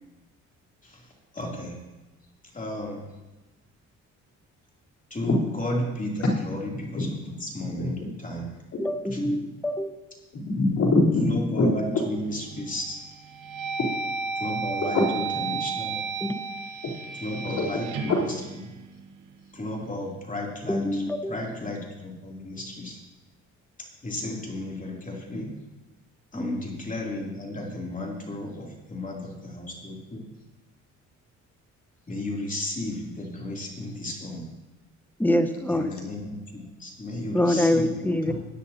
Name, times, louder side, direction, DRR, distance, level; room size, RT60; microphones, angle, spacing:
voice 1, 0.8-1.8 2.5-3.1 5.1-8.5 9.1-9.2 11.2-13.0 14.3-16.0 17.1-18.7 19.5-23.0 23.8-25.6 26.3-30.3 32.1-34.5 35.7-38.0, left 1 dB, 25° left, -2 dB, 2.9 m, -34 dB
voice 2, 7.6-8.1 8.7-8.8 9.2-9.3 10.3-12.0 14.5-15.1 17.3-18.3 38.3-38.4, left 2 dB, 70° left, -4 dB, 3.6 m, -25 dB
voice 3, 8.8-9.9 15.0-15.1 16.2-16.3 20.7-21.4 26.3-26.6 35.2-35.9 37.3-38.3, left 1 dB, 5° left, 8 dB, 0.9 m, -25 dB
sound 1, 12.2-12.7 13.2-19.3, right 5 dB, 85° right, 1.0 m, -33 dB
16.0 x 10.0 x 2.8 m, 1.1 s
cardioid pair, 90°, 30 cm